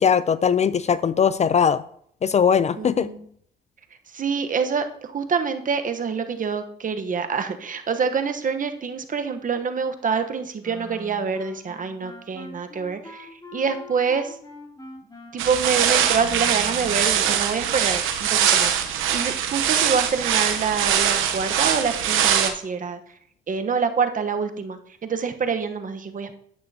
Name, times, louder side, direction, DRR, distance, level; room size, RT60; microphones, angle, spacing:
voice 1, 0.0-1.8 2.2-3.1, left 7 dB, 35° left, 16 dB, 0.4 m, -20 dB
voice 2, 2.8-3.2 4.1-14.4 15.3-23.0 23.5-26.4, right 5 dB, 40° right, 7 dB, 1.1 m, -26 dB
Wind instrument woodwind instrument, 10.6-17.2, left 1 dB, 20° left, 2.8 m, -43 dB
sound 1, 15.4-22.5, right 9 dB, 90° right, 0.9 m, -22 dB
10.5 x 8.7 x 2.8 m, 0.64 s
cardioid pair, 90°, 20 cm